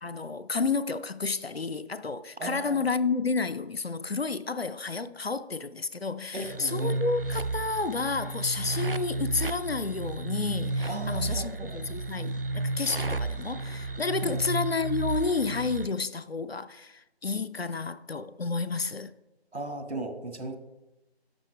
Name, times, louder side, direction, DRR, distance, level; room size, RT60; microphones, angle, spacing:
voice 1, 0.0-19.1, left 4 dB, 65° left, 0.6 m, -31 dB
voice 2, 2.4-2.9 6.3-7.0 10.9-11.9 14.2-14.5 19.5-20.5, right 2 dB, 85° right, 1.6 m, -37 dB
sound 1, 6.3-15.9, right 2 dB, 60° right, 0.4 m, -32 dB
11.5 x 6.5 x 3.2 m
figure-of-eight pair, 180°, 33 cm